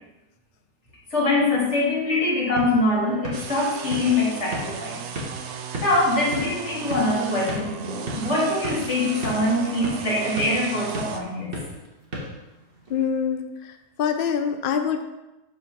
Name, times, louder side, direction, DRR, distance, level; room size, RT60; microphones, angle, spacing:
voice 1, 1.1-5.0 5.8-11.5, left 2 dB, 45° left, -5 dB, 2.4 m, -23 dB
Basketball Bouncing, 2.2-13.0, equal, 35° right, 1.7 m, -37 dB
sound 1, 3.3-11.2, right 6 dB, 60° right, 0.7 m, -36 dB
voice 2, 12.9-13.7 14.0-15.0, left 7 dB, 85° left, 6 dB, 0.4 m, -25 dB
7.8 x 4.3 x 5.9 m, 1.0 s
omnidirectional pair, 1.8 m